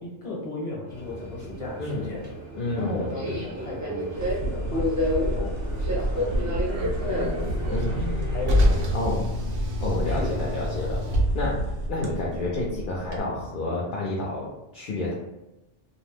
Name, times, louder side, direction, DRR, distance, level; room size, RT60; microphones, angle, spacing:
voice 1, 0.0-2.3 2.8-7.4 7.9-8.9 9.8-10.4, left 2 dB, 35° left, -3 dB, 0.8 m, -36 dB
Subway metro underground, 0.9-8.8, left 1 dB, 20° right, 0.5 m, -31 dB
voice 2, 2.6-3.4 7.7-8.3 8.9-9.3 9.8-11.0 11.3-11.6 11.9-15.1, left 2 dB, 60° left, -4 dB, 0.6 m, -29 dB
sound 1, 4.2-11.9, right 1 dB, 85° right, 1.0 m, -30 dB
Car, 5.5-13.2, left 1 dB, 60° right, 0.6 m, -28 dB
2.4 x 2.0 x 3.1 m, 0.97 s
omnidirectional pair, 1.2 m